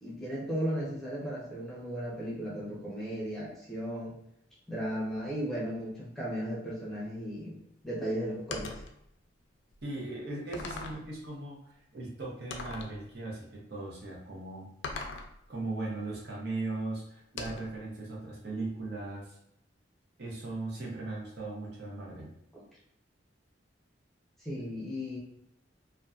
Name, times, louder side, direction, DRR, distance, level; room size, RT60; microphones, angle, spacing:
voice 1, 0.0-4.1 4.7-8.8 22.5-22.6 24.4-25.2, equal, ahead, -6 dB, 0.7 m, -35 dB
sound 1, 8.5-8.9 9.7-9.8 10.5-11.1 12.5-13.0 14.8-15.3 17.4-17.8, left 3 dB, 85° left, 0.4 m, -39 dB
voice 2, 9.8-14.7 15.5-19.4 20.2-22.3, right 2 dB, 60° right, -4 dB, 0.7 m, -38 dB
2.6 x 2.2 x 2.4 m, 0.76 s
head